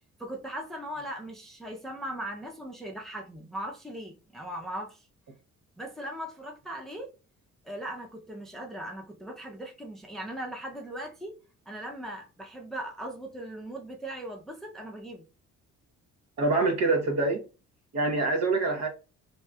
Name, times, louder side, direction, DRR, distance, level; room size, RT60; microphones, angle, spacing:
voice 1, 0.2-5.1 5.8-7.1 7.6-11.3 11.7-15.3, right 1 dB, ahead, 0.6 m, -39 dB
voice 2, 16.4-17.4 17.9-18.9, right 3 dB, 60° right, 0.9 m, -25 dB
3.0 x 2.7 x 2.3 m
cardioid pair, 90°, 30 cm